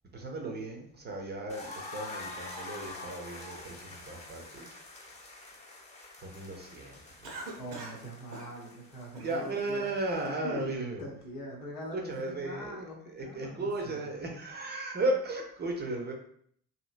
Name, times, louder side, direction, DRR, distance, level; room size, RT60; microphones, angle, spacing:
voice 1, 0.1-4.6 6.2-7.0 9.2-11.0 11.9-12.8 13.1-16.1, right 2 dB, 20° right, 1 dB, 0.5 m, -35 dB
sound 1, 1.5-10.2, left 2 dB, 15° left, 0.7 m, -46 dB
Cough, 7.2-8.0 8.3-8.5 9.2-9.6 10.0-10.7, right 1 dB, 80° right, 0.7 m, -42 dB
voice 2, 7.6-9.9 11.0-14.1, equal, 80° left, -1 dB, 0.8 m, -43 dB
2.8 x 2.7 x 2.4 m, 0.64 s
figure-of-eight pair, 50°, 47 cm